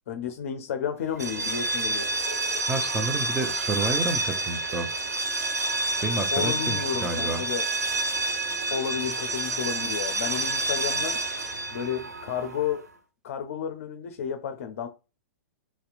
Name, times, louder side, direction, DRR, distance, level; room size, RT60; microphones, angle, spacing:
voice 1, 0.1-2.1 6.3-7.7 8.7-11.2 11.7-12.8 13.2-14.9, left 8 dB, 55° left, 0.4 m, -32 dB
sound 1, 1.1-12.8, right 2 dB, 85° right, 0.5 m, -29 dB
voice 2, 2.7-4.9 6.0-7.4, right 2 dB, 10° right, 0.4 m, -30 dB
2.7 x 2.0 x 2.4 m
figure-of-eight pair, 115°, 9 cm